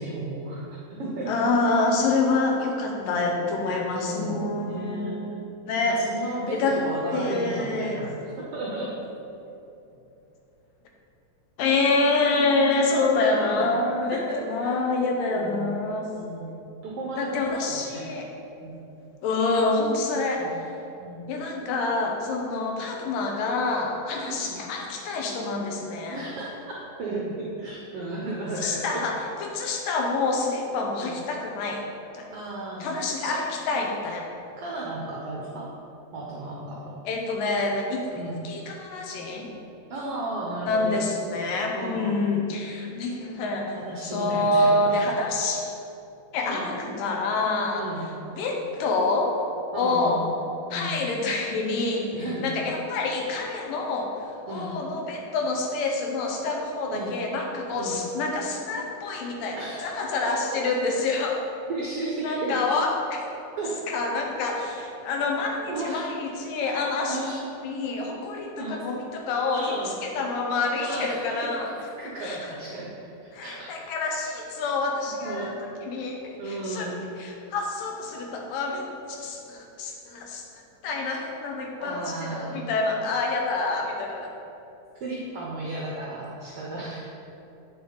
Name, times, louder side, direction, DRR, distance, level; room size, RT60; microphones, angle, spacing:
voice 1, 0.0-1.3 3.0-3.4 3.9-5.1 5.9-6.6 6.8-8.1 8.5-8.9 13.1-13.7 14.0-14.7 15.3-15.7 16.1-16.5 16.8-18.0 18.6-18.8 20.4-20.5 21.0-21.2 24.1-24.6 26.1-28.8 29.2-29.3 30.9-31.1 32.3-32.9 33.3-33.4 34.6-35.7 36.1-37.0 38.1-38.4 39.9-41.0 41.7-42.2 43.7-45.1 46.4-47.0 47.7-48.1 49.7-50.3 50.7-51.0 52.1-52.5 54.5-54.7 56.9-57.2 57.8-58.0 59.6-59.9 60.2-60.6 61.7-62.6 63.6-63.8 65.7-66.0 67.0-67.4 68.6-68.8 69.5-69.9 70.8-71.4 72.0-72.9 73.4-73.7 75.2-75.6 76.4-77.0 81.8-82.6 85.0-87.1, right 2 dB, 80° right, -4 dB, 1.3 m, -34 dB
voice 2, 1.3-5.3 5.7-6.0 6.5-6.8 7.1-8.0 11.6-16.1 17.2-18.2 19.2-20.5 21.3-26.2 28.6-31.8 32.1-32.3 32.8-34.3 37.1-38.2 38.4-39.5 40.6-43.8 44.0-45.7 46.3-47.9 48.4-49.3 49.7-50.2 50.7-52.1 52.4-54.1 54.5-61.4 62.2-63.2 63.9-67.2 67.6-69.7 70.0-71.7 72.2-72.4 73.3-75.5 75.8-76.9 77.2-80.4 80.8-84.3, left 3 dB, 90° left, 1 dB, 2.6 m, -27 dB
8.8 x 6.2 x 4.0 m, 2.8 s
omnidirectional pair, 3.8 m